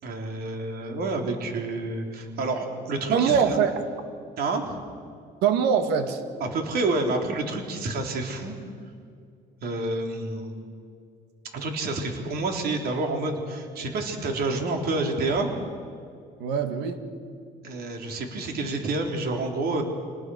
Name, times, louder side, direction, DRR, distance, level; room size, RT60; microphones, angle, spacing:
voice 1, 0.0-3.6 4.4-4.7 6.4-8.6 9.6-10.5 11.5-15.5 17.6-19.8, right 2 dB, 65° right, 3 dB, 3.7 m, -28 dB
voice 2, 3.1-3.7 5.4-6.2 16.4-17.1, right 7 dB, 90° right, 7 dB, 2.2 m, -23 dB
27.5 x 19.5 x 6.4 m, 2.3 s
cardioid pair, 110°, 17 cm